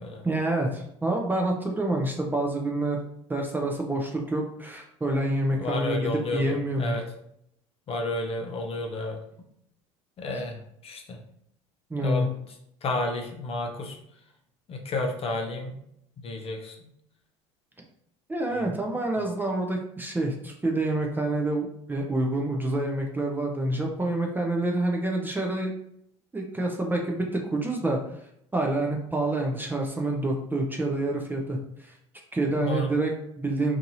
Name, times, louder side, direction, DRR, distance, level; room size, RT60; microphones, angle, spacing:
voice 1, 0.2-3.0 3.3-7.0 10.3-10.4 11.9-12.3 18.3-25.7 26.3-28.0 28.5-31.9 32.3-33.8, right 2 dB, 10° right, 0 dB, 0.5 m, -27 dB
voice 2, 5.5-7.0 7.9-9.2 10.2-10.6 10.8-11.2 12.0-12.2 12.8-14.0 14.7-15.8 16.2-16.7 18.5-18.6 32.6-32.9, left 2 dB, 40° left, 2 dB, 0.7 m, -31 dB
2.7 x 2.6 x 2.6 m, 0.74 s
hypercardioid pair, 70°, 16 cm